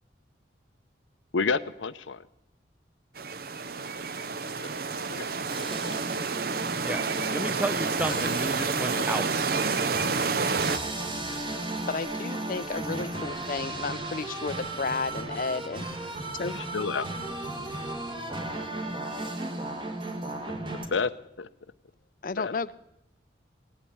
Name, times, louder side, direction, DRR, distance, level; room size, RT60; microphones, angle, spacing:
voice 1, 1.3-2.2 4.6-4.7 5.1-5.2 5.6-5.9 8.1-8.2 8.9-9.1 16.5-17.1 20.9-21.5 22.4-22.5, left 4 dB, 90° left, 14 dB, 0.7 m, -30 dB
sound 1, 3.2-10.8, right 4 dB, 50° right, 0.7 m, -29 dB
sound 2, 5.5-20.8, right 2 dB, 25° right, 1.6 m, -35 dB
voice 2, 7.3-9.3, right 1 dB, 10° right, 11 dB, 0.5 m, -31 dB
voice 3, 11.9-15.8 16.3-16.6 17.5-17.7 22.2-22.7, left 4 dB, 45° left, 17 dB, 0.5 m, -32 dB
19.0 x 8.4 x 8.6 m, 0.84 s
head